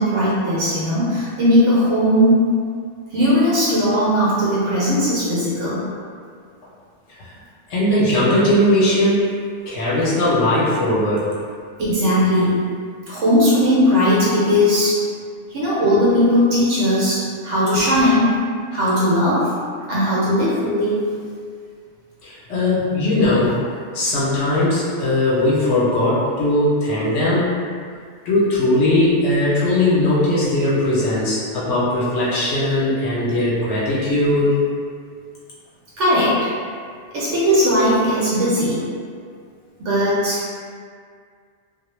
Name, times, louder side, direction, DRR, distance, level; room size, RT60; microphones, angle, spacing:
voice 1, 0.0-2.6 3.1-5.9 11.8-12.8 13.1-15.0 15.5-19.6 19.9-21.1 36.0-36.5 37.1-38.9 39.8-40.5, equal, 80° right, -9 dB, 0.9 m, -18 dB
voice 2, 7.7-9.3 9.7-11.3 22.2-23.6 23.9-27.5 28.2-34.5, left 1 dB, 85° left, -8 dB, 0.9 m, -19 dB
2.3 x 2.0 x 3.0 m, 2.1 s
omnidirectional pair, 1.2 m